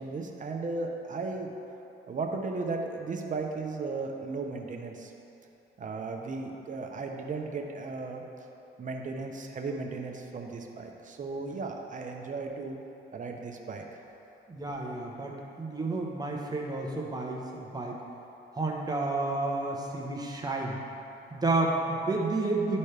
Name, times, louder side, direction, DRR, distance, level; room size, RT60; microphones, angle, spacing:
voice 1, 0.0-1.5 2.1-5.1 5.8-8.2 8.8-12.8 13.1-13.8, right 3 dB, 40° right, 2 dB, 0.9 m, -35 dB
voice 2, 14.5-18.0 18.5-20.8 21.3-22.8, right 2 dB, 20° right, -1 dB, 1.1 m, -31 dB
12.0 x 4.2 x 3.4 m, 2.9 s
cardioid pair, 90°, 20 cm